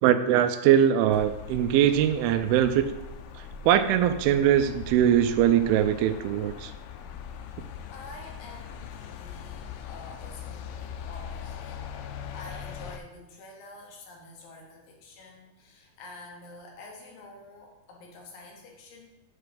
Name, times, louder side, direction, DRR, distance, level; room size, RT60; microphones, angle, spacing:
voice 1, 0.0-2.9 3.4-6.7, right 10 dB, 90° right, 11 dB, 2.4 m, -22 dB
sound 1, 1.1-13.0, left 7 dB, 90° left, 2.5 m, -41 dB
voice 2, 7.6-19.1, left 2 dB, 75° left, 0 dB, 2.8 m, -48 dB
7.6 x 4.7 x 5.1 m, 0.99 s
omnidirectional pair, 4.2 m